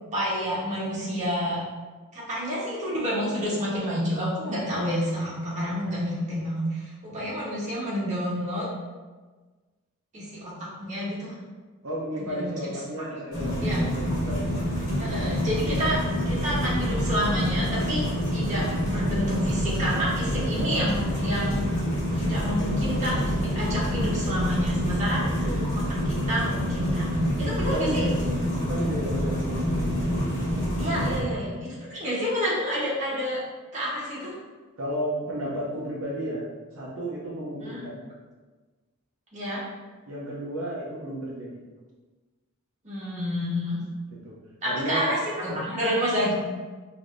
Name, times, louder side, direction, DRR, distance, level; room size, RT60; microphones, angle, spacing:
voice 1, 0.0-1.6 2.1-8.7 10.1-11.4 12.2-12.5 13.6-13.9 15.0-18.0 18.3-21.7 22.1-28.0 30.8-33.4 33.7-34.4 37.6-37.8 39.3-39.6 42.8-43.8 44.6-46.3, equal, 35° right, -7 dB, 1.2 m, -29 dB
voice 2, 11.8-14.4 20.3-20.5 25.3-25.7 27.6-30.0 34.8-36.4 36.7-38.0 40.1-41.6 44.1-44.3 44.6-45.1, right 1 dB, 70° right, -6 dB, 0.7 m, -33 dB
sound 1, 13.3-31.2, equal, 40° left, 1.3 m, -27 dB
4.8 x 2.7 x 2.6 m, 1.3 s
head